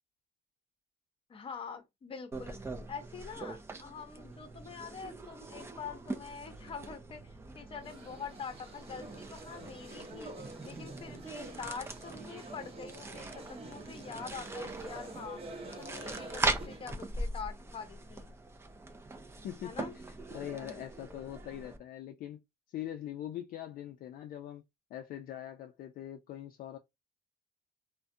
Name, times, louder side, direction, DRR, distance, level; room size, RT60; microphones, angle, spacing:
voice 1, 1.3-7.2 7.5-10.3 10.6-15.4 15.8-18.3 19.6-19.9, left 6 dB, 35° left, 0.7 m, -45 dB
sound 1, 2.3-21.8, right 2 dB, 15° right, 0.4 m, -41 dB
sound 2, 7.7-16.9, right 2 dB, 35° right, 0.8 m, -47 dB
voice 2, 20.3-22.4 22.7-24.6 24.9-26.8, left 11 dB, 60° left, 0.4 m, -42 dB
2.4 x 2.1 x 2.6 m
cardioid pair, 110°, 17 cm